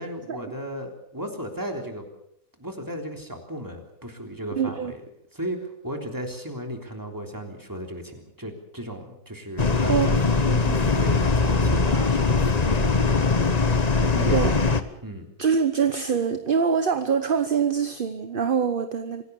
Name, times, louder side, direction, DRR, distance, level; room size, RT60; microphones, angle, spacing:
voice 1, 0.0-2.0 2.6-5.0 5.3-13.4 13.9-14.5 15.0-15.3, equal, 10° right, 3 dB, 3.4 m, -35 dB
voice 2, 4.6-4.9 9.9-10.2 10.5-10.6 14.3-14.5 15.4-19.2, right 6 dB, 40° right, 10 dB, 1.0 m, -24 dB
sound 1, 9.6-14.8, left 4 dB, 30° left, 1.1 m, -21 dB
26.0 x 17.0 x 7.0 m, 0.72 s
omnidirectional pair, 1.7 m